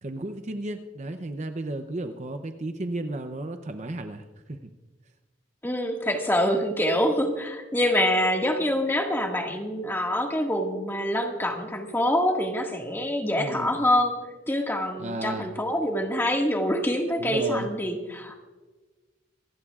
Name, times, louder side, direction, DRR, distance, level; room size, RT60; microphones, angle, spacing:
voice 1, 0.0-4.2 4.5-4.7 13.4-13.9 15.0-15.5 17.2-17.7, right 1 dB, 35° right, 7 dB, 0.6 m, -33 dB
voice 2, 5.6-14.2 14.5-18.4, left 1 dB, 10° left, 1 dB, 1.8 m, -25 dB
27.0 x 15.5 x 2.4 m, 1.3 s
head